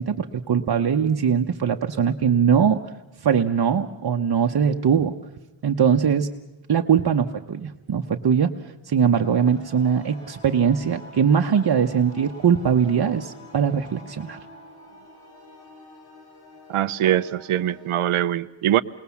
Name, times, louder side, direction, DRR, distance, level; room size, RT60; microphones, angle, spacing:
voice 1, 0.0-2.8 3.2-5.1 5.6-6.3 6.7-8.5 8.9-14.4, right 7 dB, 50° right, 1.0 m, -21 dB
sound 1, 9.1-18.0, left 2 dB, 90° left, 4.6 m, -47 dB
voice 2, 16.7-18.8, right 11 dB, 75° right, 0.7 m, -22 dB
28.5 x 21.0 x 7.1 m
wide cardioid pair, 125°, 50 cm